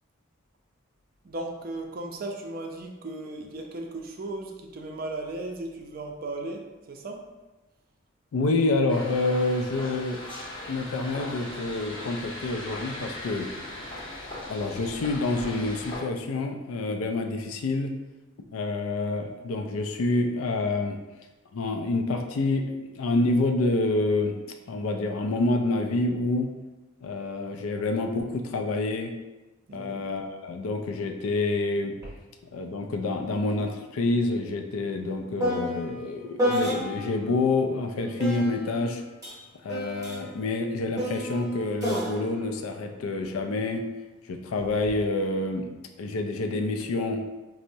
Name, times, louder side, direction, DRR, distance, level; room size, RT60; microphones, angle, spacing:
voice 1, 1.2-7.4 29.7-30.0, right 2 dB, 45° right, 2 dB, 0.4 m, -36 dB
voice 2, 8.3-10.2 10.7-13.5 14.5-17.9 18.5-21.0 21.5-24.4 24.7-26.5 27.0-29.1 29.7-32.0 32.5-39.0 39.6-43.8 44.3-45.7 46.0-47.2, left 2 dB, 90° left, 5 dB, 0.4 m, -27 dB
sound 1, 8.9-16.0, left 1 dB, 25° left, 0.5 m, -39 dB
sound 2, 32.0-32.2 32.5-37.3 38.2-43.7 44.6-45.0, equal, 15° right, 0.7 m, -32 dB
4.3 x 2.0 x 2.6 m, 1.1 s
head